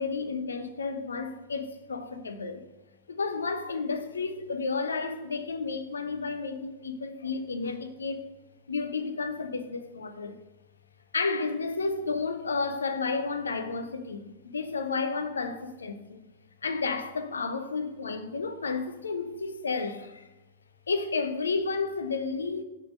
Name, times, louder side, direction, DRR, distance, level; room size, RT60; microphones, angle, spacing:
voice 1, 0.0-2.6 3.1-8.2 8.7-10.4 11.1-16.3 16.6-20.3 20.9-22.6, left 4 dB, 75° left, 0.5 m, -32 dB
5.6 x 3.8 x 5.2 m
figure-of-eight pair, 90°, 0 cm